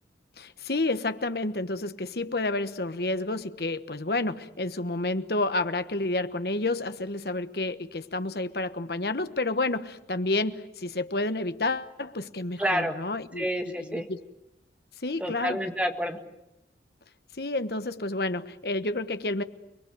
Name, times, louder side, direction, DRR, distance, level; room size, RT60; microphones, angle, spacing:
voice 1, 0.4-13.5 13.9-14.2 15.0-15.6 17.3-19.4, left 2 dB, 60° left, 1.2 m, -30 dB
voice 2, 12.6-13.0 13.4-14.1 15.2-16.2, equal, 5° right, 1.8 m, -28 dB
29.5 x 21.0 x 9.5 m
head